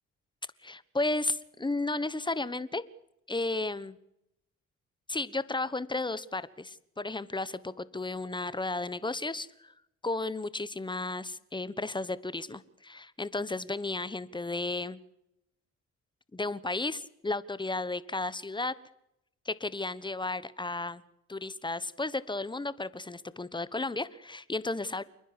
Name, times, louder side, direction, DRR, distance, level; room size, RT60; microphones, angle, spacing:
voice 1, 0.6-2.8 3.3-4.0 5.1-9.7 10.0-15.0 16.3-18.7 19.4-21.0 21.3-25.0, left 2 dB, 15° left, 16 dB, 1.2 m, -33 dB
29.0 x 10.0 x 9.9 m, 0.81 s
cardioid pair, 90°, 30 cm